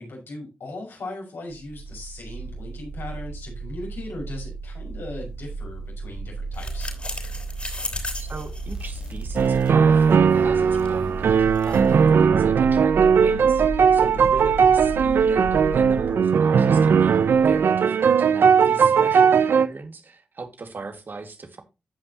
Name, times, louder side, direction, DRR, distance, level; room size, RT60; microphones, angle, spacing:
voice 1, 0.0-7.0 18.7-19.1, left 2 dB, 75° left, 6.0 m, -38 dB
sound 1, 1.6-16.1 17.0-17.6, right 3 dB, 25° right, 2.1 m, -35 dB
sound 2, 6.5-12.1, left 2 dB, 30° left, 4.0 m, -37 dB
voice 2, 8.2-17.2 17.4-21.6, right 3 dB, 60° right, 2.1 m, -37 dB
sound 3, 9.4-19.7, right 6 dB, 80° right, 0.7 m, -18 dB
15.0 x 5.4 x 3.0 m
cardioid pair, 45°, 4 cm